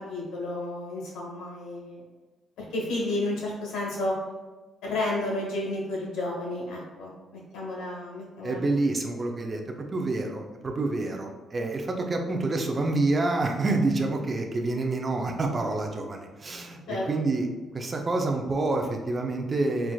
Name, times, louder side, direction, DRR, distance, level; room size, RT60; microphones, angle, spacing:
voice 1, 0.0-2.0 2.6-4.1 4.8-8.6 16.9-17.0, left 2 dB, 85° left, -3 dB, 1.2 m, -31 dB
voice 2, 8.4-17.5 17.7-19.9, right 2 dB, 30° right, 2 dB, 0.5 m, -28 dB
4.4 x 2.4 x 2.3 m, 1.3 s
cardioid pair, 90°, 0 cm